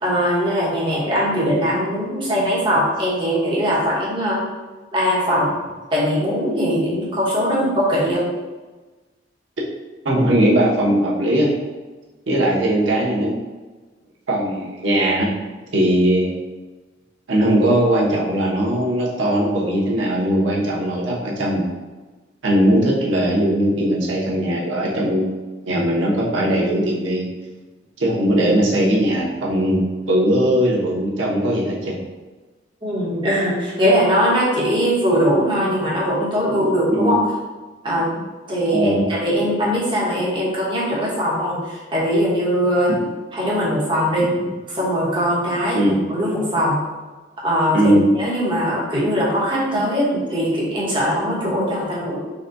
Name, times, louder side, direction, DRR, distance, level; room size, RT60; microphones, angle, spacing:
voice 1, 0.0-4.4 4.9-5.5 5.9-8.2 32.8-37.2 37.8-38.1 38.5-42.9 43.3-44.3 44.7-46.8 47.4-52.2, equal, 25° right, -6 dB, 1.1 m, -20 dB
voice 2, 10.0-11.5 12.3-13.3 14.3-15.3 15.7-16.4 17.3-21.6 22.4-25.2 25.6-27.2 28.0-31.9 36.9-37.2 38.7-39.1 45.7-46.0 47.7-48.1, right 1 dB, 90° right, -4 dB, 1.0 m, -19 dB
4.0 x 2.3 x 3.9 m, 1.2 s
head